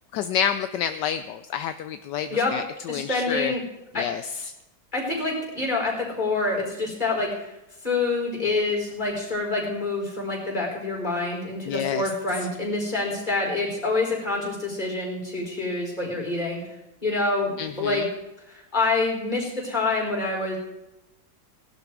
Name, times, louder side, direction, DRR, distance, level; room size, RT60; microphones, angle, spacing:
voice 1, 0.1-3.5 4.0-4.3 11.7-12.1 17.6-18.1, left 8 dB, 75° left, 10 dB, 1.2 m, -28 dB
voice 2, 2.9-3.6 3.9-4.0 4.9-7.5 7.8-16.6 17.0-18.0 18.5-20.6, left 3 dB, 25° left, -1 dB, 5.1 m, -26 dB
18.5 x 12.0 x 4.7 m, 0.94 s
omnidirectional pair, 1.9 m